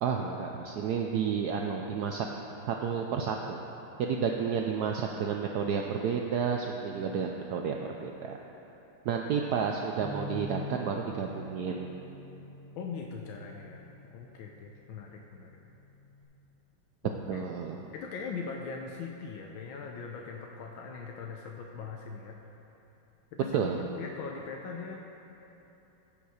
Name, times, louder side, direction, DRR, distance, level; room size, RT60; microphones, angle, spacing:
voice 1, 0.0-2.3 2.7-3.6 4.0-8.4 9.1-11.9 17.3-17.8 23.5-23.8, right 6 dB, 80° right, 2 dB, 0.9 m, -31 dB
Bass guitar, 10.0-14.4 15.1-16.2, left 1 dB, 25° left, 2.8 m, -45 dB
voice 2, 12.8-13.8 14.1-15.5 17.0-17.4 17.9-22.4 23.3-25.0, left 5 dB, 75° left, 1 dB, 1.4 m, -41 dB
15.5 x 5.5 x 4.8 m, 3.0 s
omnidirectional pair, 2.2 m